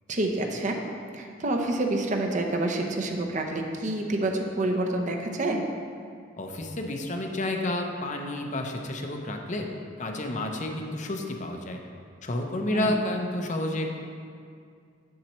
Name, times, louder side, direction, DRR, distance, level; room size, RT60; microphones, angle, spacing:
voice 1, 0.1-0.8 1.1-5.6 12.7-13.0, right 2 dB, 40° right, 3 dB, 0.7 m, -28 dB
voice 2, 6.4-9.7 10.0-11.8 12.2-13.9, left 1 dB, 40° left, 3 dB, 0.7 m, -30 dB
8.8 x 7.3 x 3.1 m, 2.3 s
head